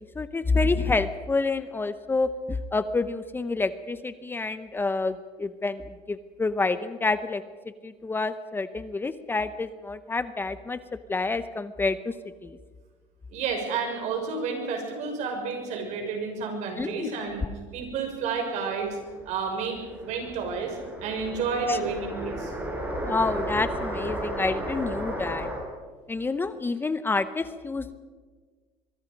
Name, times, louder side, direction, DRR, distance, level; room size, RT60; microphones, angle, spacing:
voice 1, 0.2-7.4 7.8-10.8 11.1-12.1 12.4-12.6 16.8-17.1 21.7-21.8 23.0-25.5 26.1-27.9, left 3 dB, 15° left, 12 dB, 0.8 m, -28 dB
voice 2, 13.3-17.4 17.7-19.0 19.3-22.5, right 5 dB, 65° right, 4 dB, 6.2 m, -31 dB
sound 1, 18.8-25.6, right 1 dB, 15° right, 5.6 m, -34 dB
24.0 x 22.5 x 5.3 m, 1.5 s
cardioid pair, 125°, 13 cm